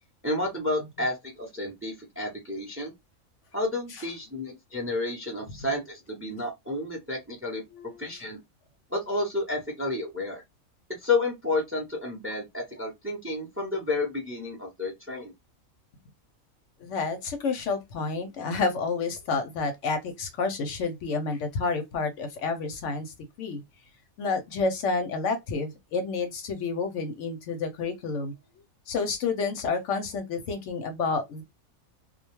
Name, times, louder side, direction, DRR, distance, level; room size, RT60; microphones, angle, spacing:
voice 1, 0.2-2.9 3.5-7.6 8.0-8.4 8.9-10.4 11.0-15.3, left 2 dB, 15° right, 0.5 m, -31 dB
voice 2, 7.7-8.2 16.8-23.6 24.2-28.3 28.9-31.4, left 4 dB, 70° left, 0.8 m, -30 dB
2.3 x 2.1 x 2.9 m
omnidirectional pair, 1.4 m